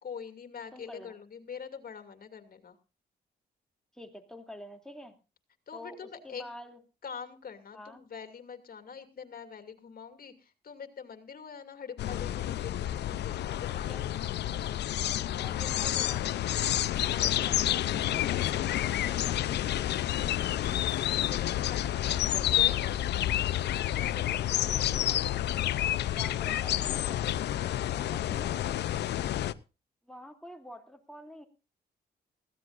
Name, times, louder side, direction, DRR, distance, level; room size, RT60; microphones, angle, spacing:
voice 1, 0.0-2.8 5.7-6.4 7.0-14.7 17.1-17.6 20.4-23.3 24.0-24.7 27.6-29.4, left 6 dB, 55° left, 7 dB, 2.5 m, -45 dB
voice 2, 0.7-1.1 3.9-5.1 5.7-6.8 7.7-8.0 13.7-14.1 15.3-16.7 24.6-25.3 26.0-27.3 27.8-28.6 30.0-31.5, left 1 dB, 5° left, 4 dB, 2.8 m, -48 dB
sound 1, 12.0-29.5, left 12 dB, 80° left, 0.6 m, -29 dB
19.5 x 15.5 x 2.5 m, 0.32 s
cardioid pair, 75°, 18 cm